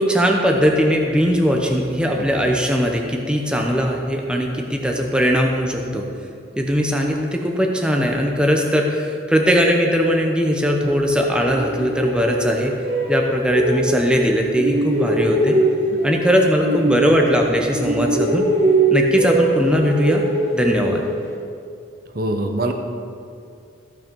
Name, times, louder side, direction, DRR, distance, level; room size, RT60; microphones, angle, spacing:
voice 1, 0.0-6.1 6.6-12.7 13.1-15.6 16.0-18.5 18.9-20.2 20.5-21.0, equal, 5° right, 1 dB, 0.8 m, -19 dB
sound 1, 11.5-14.2 14.6-17.5 17.8-21.3, right 1 dB, 90° right, 2.7 m, -21 dB
voice 2, 22.1-22.7, right 1 dB, 50° right, 5 dB, 0.9 m, -22 dB
14.5 x 5.8 x 5.3 m, 2.4 s
head